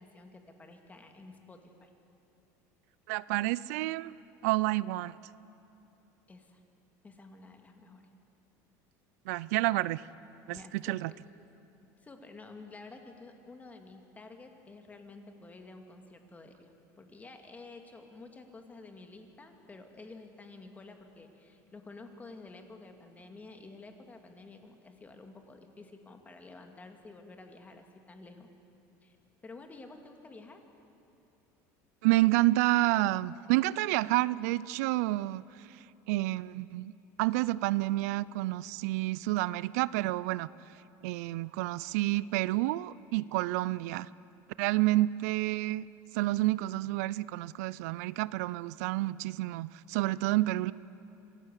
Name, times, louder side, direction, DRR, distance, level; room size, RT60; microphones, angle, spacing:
voice 1, 0.0-1.9 6.3-6.6 7.0-8.0 10.5-11.0 12.0-28.5 29.0-29.2 29.4-30.6, left 3 dB, 20° left, 5 dB, 2.3 m, -50 dB
voice 2, 3.1-4.1 4.4-5.2 9.3-10.0 10.5-11.1 32.0-35.8 36.1-36.9 37.2-40.5 41.0-44.1 44.6-45.9 46.1-50.7, right 18 dB, 80° right, 19 dB, 0.4 m, -29 dB
25.5 x 16.0 x 8.3 m, 2.8 s
supercardioid pair, 115°, 8 cm